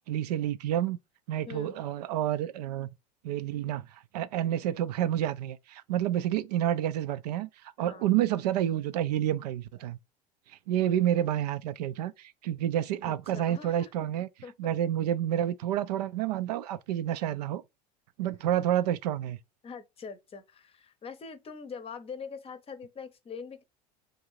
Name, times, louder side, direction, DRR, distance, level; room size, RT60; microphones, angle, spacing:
voice 1, 0.1-1.0 1.3-2.9 3.2-7.5 7.8-10.0 10.5-14.3 14.6-17.6 18.2-19.4, right 11 dB, 75° right, 0.4 m, -29 dB
voice 2, 1.5-1.8 7.8-8.1 13.0-13.9 14.4-14.7 19.6-23.6, left 5 dB, 30° left, 0.7 m, -43 dB
3.9 x 2.6 x 3.0 m
hypercardioid pair, 80°, 21 cm